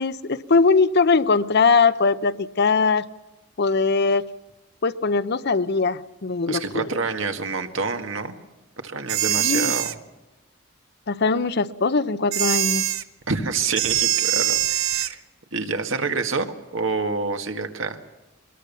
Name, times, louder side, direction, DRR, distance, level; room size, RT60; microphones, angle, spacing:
voice 1, 0.0-3.1 3.6-4.3 4.8-6.9 9.3-9.7 11.1-12.8, left 4 dB, 55° left, 14 dB, 0.7 m, -21 dB
voice 2, 6.5-8.4 8.8-10.0 13.3-15.2 15.5-18.0, right 4 dB, 70° right, 6 dB, 1.9 m, -27 dB
sound 1, 9.1-9.9 12.3-13.0 13.8-15.1, right 12 dB, 85° right, 0.9 m, -23 dB
22.5 x 21.5 x 7.0 m, 1.0 s
head